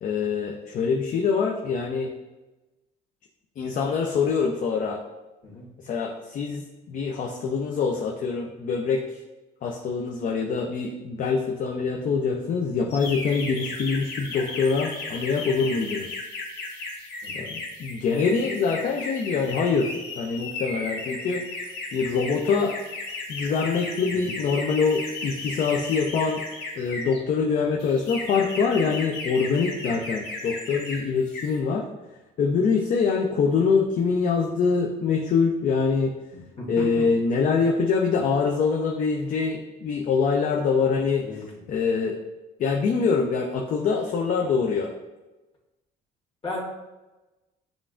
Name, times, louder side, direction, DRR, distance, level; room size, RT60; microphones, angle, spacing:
voice 1, 0.0-2.1 3.6-5.0 5.8-9.2 9.6-16.1 17.3-21.4 21.9-22.8 23.3-26.4 26.8-31.8 32.4-36.1 36.7-42.2 42.6-44.9, left 5 dB, 50° left, 1 dB, 0.5 m, -24 dB
sound 1, 12.9-27.2 27.8-31.0 31.3-31.6, left 3 dB, 75° left, 1.5 m, -35 dB
voice 2, 36.3-36.8 41.2-41.4 46.4-46.6, left 2 dB, 35° left, -4 dB, 1.3 m, -35 dB
6.9 x 2.4 x 2.4 m, 1.1 s
cardioid pair, 110°, 17 cm